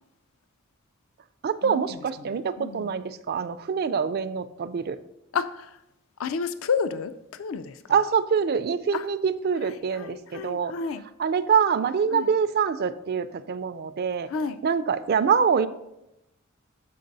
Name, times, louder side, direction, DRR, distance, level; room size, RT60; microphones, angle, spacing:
voice 1, 1.4-5.0 7.9-10.7 11.2-14.3 14.6-15.7, right 6 dB, 50° right, 13 dB, 0.4 m, -25 dB
voice 2, 2.6-2.9 5.3-5.8 6.2-7.8 8.9-9.1 9.7-11.0 12.1-12.3 14.3-14.6, left 5 dB, 65° left, 12 dB, 0.4 m, -30 dB
7.6 x 5.1 x 4.0 m, 0.87 s
head